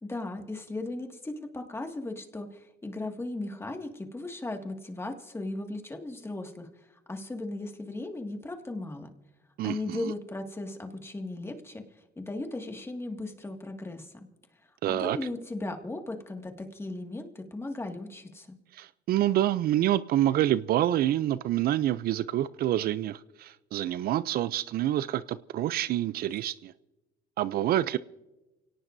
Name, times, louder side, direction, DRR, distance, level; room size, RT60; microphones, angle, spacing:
voice 1, 0.0-9.1 9.6-11.8 12.2-14.3 14.8-18.6, left 2 dB, 15° left, 2.0 m, -37 dB
voice 2, 9.6-10.1 14.8-15.2 18.7-26.7 27.4-28.0, right 13 dB, 65° right, 0.5 m, -27 dB
29.0 x 18.0 x 2.7 m
cardioid pair, 110°, 17 cm